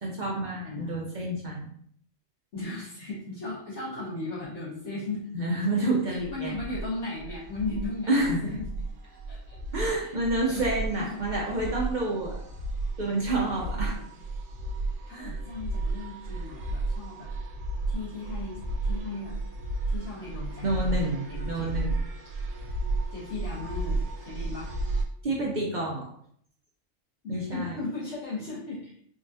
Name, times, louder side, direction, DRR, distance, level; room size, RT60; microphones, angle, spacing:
voice 1, 0.0-1.7 5.3-6.6 8.1-8.4 9.7-12.4 13.0-14.0 15.1-15.4 20.6-22.0 25.2-26.1 27.3-27.8, right 2 dB, 50° right, -3 dB, 0.5 m, -29 dB
voice 2, 0.6-1.0 2.5-5.3 6.1-8.7 9.3-9.6 10.0-10.1 10.5-10.7 11.0-11.2 13.5-14.1 15.0-17.3 17.9-18.6 18.9-19.3 19.9-21.7 23.1-24.7 27.2-29.0, left 3 dB, 65° left, -8 dB, 1.4 m, -37 dB
sound 1, 6.2-25.0, right 2 dB, 75° right, 0.9 m, -33 dB
3.6 x 2.3 x 2.6 m, 0.64 s
omnidirectional pair, 1.3 m